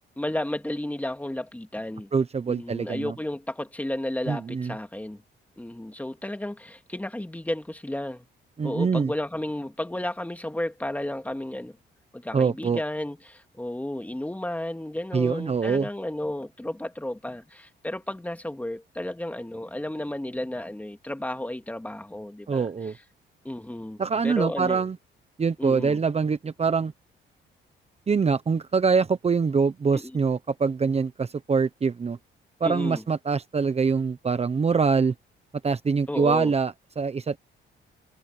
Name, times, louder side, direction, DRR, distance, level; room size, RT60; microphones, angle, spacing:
voice 1, 0.2-2.1 2.5-5.2 5.6-8.3 8.6-11.8 12.1-22.7 23.4-24.8 25.6-26.0 29.9-30.1 32.6-33.0 36.1-36.5, left 1 dB, 10° left, 2.3 m, -32 dB
voice 2, 2.1-3.1 4.3-4.7 8.6-9.1 12.3-12.8 15.1-15.9 22.5-23.0 24.0-25.0 25.4-26.9 28.1-32.2 32.6-35.1 35.6-37.4, right 5 dB, 30° right, 1.1 m, -24 dB
cardioid pair, 90°, 20 cm